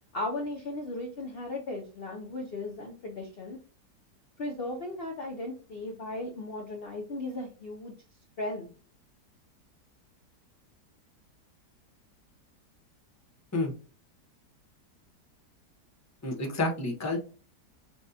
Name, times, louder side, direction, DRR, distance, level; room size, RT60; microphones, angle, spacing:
voice 1, 0.1-3.6 4.4-7.9 8.4-8.7, left 2 dB, 50° left, 1 dB, 0.7 m, -36 dB
voice 2, 16.2-17.2, left 2 dB, 15° left, 1 dB, 0.7 m, -29 dB
6.0 x 2.3 x 2.7 m, 0.36 s
omnidirectional pair, 1.8 m